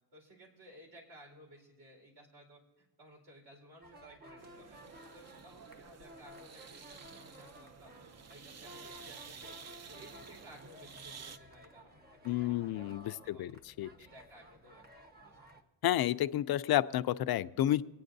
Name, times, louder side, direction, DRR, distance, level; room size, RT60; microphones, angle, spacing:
voice 1, 0.1-8.0 8.3-9.6 9.9-13.6 14.0-15.5, equal, 65° right, -1 dB, 4.5 m, -57 dB
sound 1, 3.8-15.6, equal, 20° right, 1.1 m, -56 dB
sound 2, 4.4-11.4, right 5 dB, 40° right, 0.7 m, -52 dB
voice 2, 12.2-13.9 15.8-17.8, left 13 dB, 60° left, 13 dB, 0.5 m, -31 dB
23.5 x 9.2 x 2.7 m, 1.2 s
cardioid pair, 90°, 42 cm